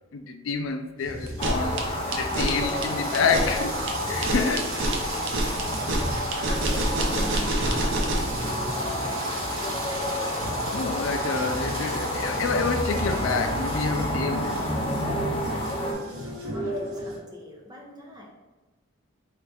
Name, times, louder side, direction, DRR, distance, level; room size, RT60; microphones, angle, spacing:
voice 1, 0.1-3.8 4.1-5.0 6.8-7.0 10.7-14.7, left 5 dB, 80° left, 0.4 m, -28 dB
sound 1, 1.0-17.2, right 1 dB, 80° right, 1.0 m, -33 dB
sound 2, 1.3-8.4, right 1 dB, 65° right, 0.7 m, -27 dB
sound 3, 1.4-15.9, left 1 dB, 25° left, 0.5 m, -31 dB
voice 2, 4.0-4.6 5.2-9.3 14.9-18.3, left 1 dB, 20° right, 0.8 m, -43 dB
3.8 x 3.2 x 3.4 m
head